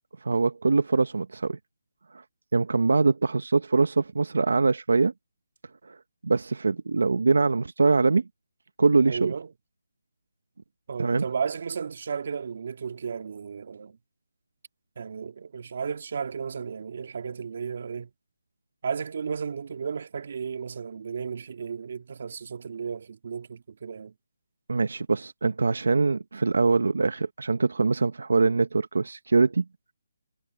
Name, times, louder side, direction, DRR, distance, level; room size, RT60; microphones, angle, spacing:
voice 1, 0.2-1.6 2.5-5.1 5.9-6.0 6.2-8.2 8.8-9.3 11.0-11.2 24.7-29.6, right 4 dB, 75° right, 1.1 m, -23 dB
voice 2, 9.1-9.5 10.9-14.0 15.0-18.1 18.8-24.1, right 6 dB, 45° right, 2.1 m, -34 dB
hypercardioid pair, 170°, 0 cm